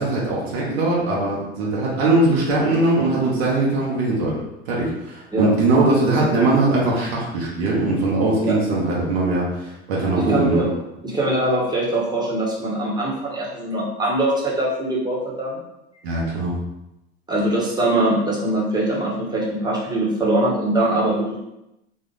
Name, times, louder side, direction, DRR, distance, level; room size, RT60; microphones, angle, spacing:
voice 1, 0.0-4.3 4.7-10.7 16.0-16.5, right 2 dB, 80° right, -4 dB, 1.4 m, -20 dB
voice 2, 10.2-10.7 11.0-15.6 17.3-21.4, right 1 dB, 15° right, -4 dB, 1.3 m, -22 dB
4.0 x 2.5 x 4.0 m, 0.90 s
hypercardioid pair, 100°, 31 cm